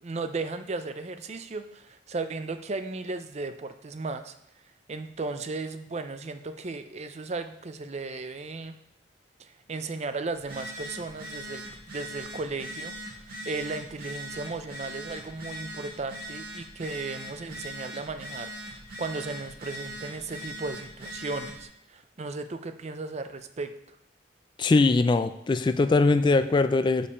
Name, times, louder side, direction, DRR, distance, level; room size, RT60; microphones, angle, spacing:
voice 1, 0.0-4.3 4.9-8.8 9.4-24.0, right 3 dB, 35° right, 9 dB, 0.5 m, -36 dB
Telephone, 10.3-21.6, equal, 55° right, 2.0 m, -41 dB
voice 2, 24.6-27.1, left 3 dB, 25° left, 10 dB, 0.3 m, -21 dB
6.7 x 5.2 x 5.5 m, 0.77 s
head